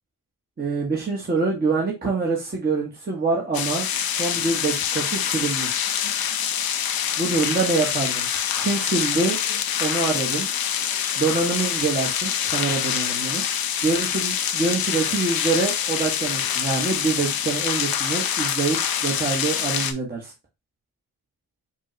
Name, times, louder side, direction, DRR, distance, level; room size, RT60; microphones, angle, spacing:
voice 1, 0.6-3.9 4.2-5.8 7.2-8.3 8.6-9.4 9.8-10.5 11.2-13.4 13.8-20.3, right 4 dB, 25° right, -3 dB, 1.2 m, -25 dB
sound 1, 3.5-19.9, left 9 dB, 70° left, 0.7 m, -25 dB
5.2 x 2.4 x 3.1 m, 0.24 s
cardioid pair, 85°, 37 cm